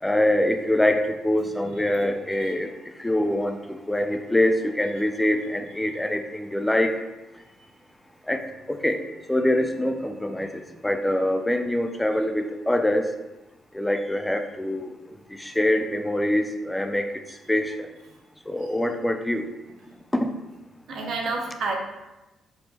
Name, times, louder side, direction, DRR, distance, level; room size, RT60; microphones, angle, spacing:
voice 1, 0.0-2.7 3.0-7.0 8.3-8.4 8.7-9.0 9.3-10.5 10.8-13.1 13.7-14.9 15.3-17.1 17.5-17.9 18.5-19.4 20.1-20.3, left 1 dB, 10° left, 6 dB, 0.3 m, -24 dB
voice 2, 20.9-21.7, right 3 dB, 65° right, 0 dB, 0.5 m, -29 dB
3.4 x 2.2 x 2.8 m, 1.0 s
cardioid pair, 90°, 0 cm